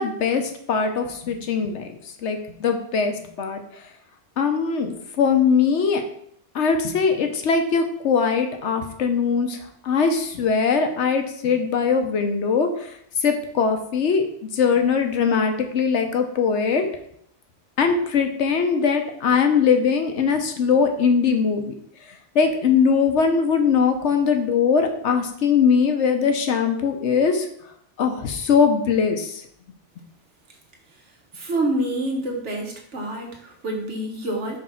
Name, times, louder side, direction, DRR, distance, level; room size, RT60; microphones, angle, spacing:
voice 1, 0.0-1.9 2.2-3.6 4.4-6.0 6.5-9.6 9.8-12.9 13.2-14.2 14.5-16.9 17.8-21.7 22.3-27.5 28.0-29.4, left 6 dB, 70° left, 5 dB, 1.1 m, -21 dB
voice 2, 31.3-34.6, right 1 dB, 70° right, 1 dB, 1.5 m, -27 dB
4.9 x 3.5 x 5.6 m, 0.68 s
omnidirectional pair, 1.2 m